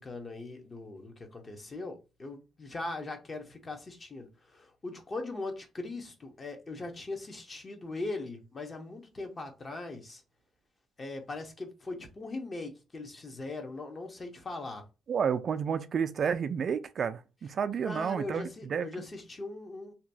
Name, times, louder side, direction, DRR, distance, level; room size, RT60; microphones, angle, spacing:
voice 1, 0.0-10.2 11.0-14.8 17.8-19.9, left 2 dB, 35° left, 0.9 m, -40 dB
voice 2, 15.1-18.9, right 7 dB, 55° right, 0.3 m, -31 dB
2.8 x 2.3 x 2.6 m
cardioid pair, 90°, 0 cm